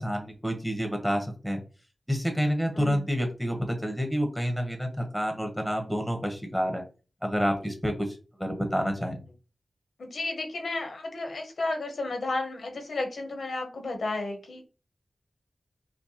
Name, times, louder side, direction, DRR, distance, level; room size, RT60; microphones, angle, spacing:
voice 1, 0.0-1.6 2.1-6.8 7.2-9.2, equal, ahead, 3 dB, 1.1 m, -29 dB
voice 2, 2.7-3.1 9.1-9.2 10.0-14.6, left 2 dB, 85° left, 4 dB, 0.9 m, -33 dB
5.1 x 2.1 x 3.0 m, 0.34 s
wide cardioid pair, 85°, 0 cm